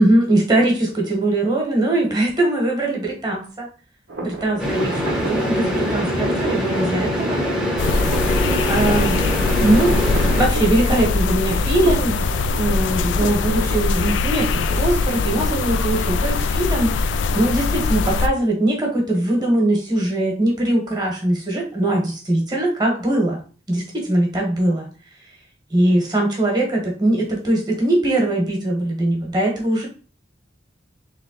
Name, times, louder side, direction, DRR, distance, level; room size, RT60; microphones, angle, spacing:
voice 1, 0.0-3.7 4.2-7.4 8.7-12.2 12.5-23.4 23.7-24.9 25.7-29.9, right 1 dB, 20° right, -1 dB, 1.4 m, -21 dB
sound 1, 4.1-14.2, right 3 dB, 80° right, 1.1 m, -33 dB
sound 2, 4.6-10.5, equal, 5° right, 0.9 m, -23 dB
sound 3, 7.8-18.3, left 4 dB, 85° left, 0.4 m, -21 dB
3.5 x 3.4 x 3.9 m, 0.38 s
head